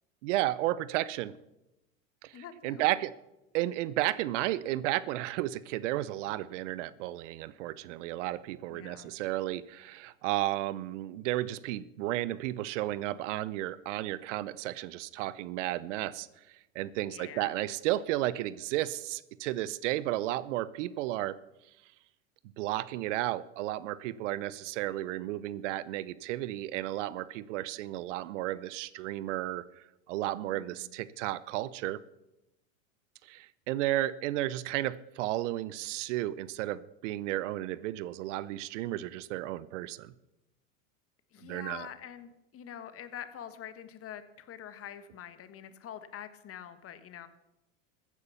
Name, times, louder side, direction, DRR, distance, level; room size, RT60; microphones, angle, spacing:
voice 1, 0.2-1.3 2.2-3.1 3.5-16.3 16.7-21.4 22.6-32.0 33.2-40.1 41.4-41.9, right 15 dB, 65° right, 18 dB, 0.8 m, -33 dB
voice 2, 2.3-2.8 8.7-9.1 17.1-17.6 30.5-30.9 41.3-47.3, left 9 dB, 35° left, 12 dB, 1.5 m, -45 dB
15.0 x 9.6 x 7.1 m, 0.90 s
hypercardioid pair, 100°, 40 cm